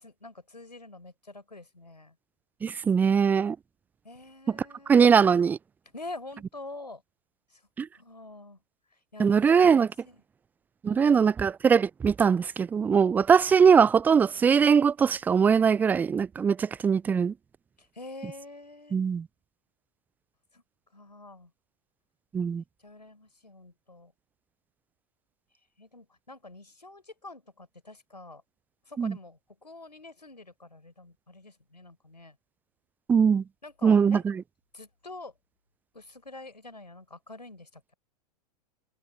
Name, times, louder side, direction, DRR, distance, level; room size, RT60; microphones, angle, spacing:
voice 1, 0.0-2.1 4.0-5.0 5.9-7.0 7.5-7.6 7.9-8.6 9.1-10.2 10.9-11.2 17.8-19.1 20.5-20.6 20.9-21.5 22.3-22.5 22.8-24.1 25.8-28.4 28.9-32.4 33.6-34.2 34.7-35.3 35.9-37.9, left 2 dB, 85° left, 4.8 m, -46 dB
voice 2, 2.6-3.6 4.9-5.6 7.8-7.9 9.2-9.9 10.8-17.3 18.9-19.2 22.3-22.6 29.0-29.1 33.1-33.4 33.8-34.3, right 6 dB, 10° right, 0.3 m, -21 dB
figure-of-eight pair, 100°, 21 cm